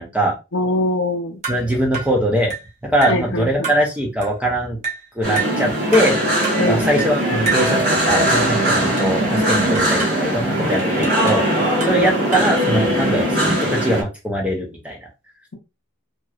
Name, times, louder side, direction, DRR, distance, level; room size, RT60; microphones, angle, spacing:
voice 1, 0.0-0.4 1.5-2.5 2.8-4.8 5.2-6.1 6.6-11.4 11.9-15.0, equal, 5° right, -1 dB, 0.7 m, -21 dB
voice 2, 0.5-1.4 3.1-3.7 6.6-6.8 11.9-12.1, left 1 dB, 60° left, 4 dB, 0.6 m, -22 dB
sound 1, 1.4-1.7 1.9-2.2 2.5-2.7 3.0-3.2 3.6-3.9 4.2-4.4 4.8-5.1 5.4-5.6 5.9-6.2 6.4-6.7 7.0-7.2 7.4-7.7 8.4-9.2 9.5-10.2 10.8-11.5 11.8-12.6, right 5 dB, 35° right, 0.9 m, -29 dB
sound 2, 5.2-14.0, right 1 dB, 50° right, 1.1 m, -20 dB
2.9 x 2.9 x 2.4 m, 0.27 s
head